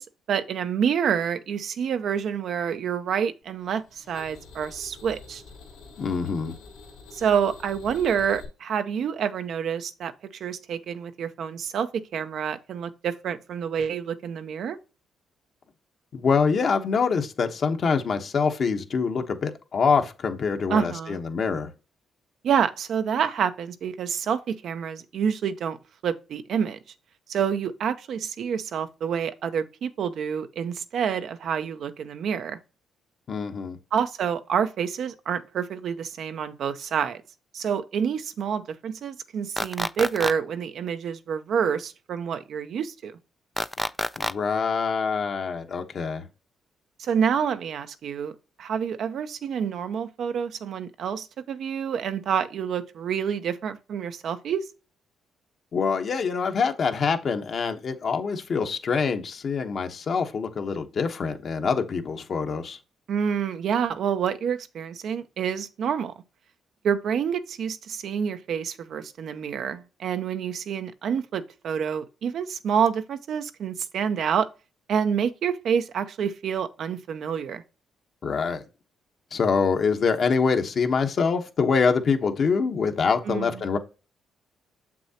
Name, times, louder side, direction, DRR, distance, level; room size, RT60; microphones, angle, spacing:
voice 1, 0.0-5.4 7.1-14.8 20.7-21.2 22.4-25.8 26.0-26.8 27.3-32.6 33.9-37.2 37.5-43.2 47.0-54.7 63.1-66.1 66.8-74.5 74.9-77.6 83.2-83.6, right 7 dB, 65° right, 0.7 m, -28 dB
sound 1, 3.6-8.5, left 4 dB, 85° left, 2.6 m, -47 dB
voice 2, 6.0-6.5 16.1-21.7 33.3-33.8 44.2-46.3 55.7-62.8 78.2-78.6 79.3-83.8, left 5 dB, 50° left, 1.1 m, -25 dB
sound 2, 39.6-40.3 43.6-44.3, left 1 dB, 5° left, 0.4 m, -27 dB
7.2 x 6.0 x 2.9 m
cardioid pair, 90°, 0 cm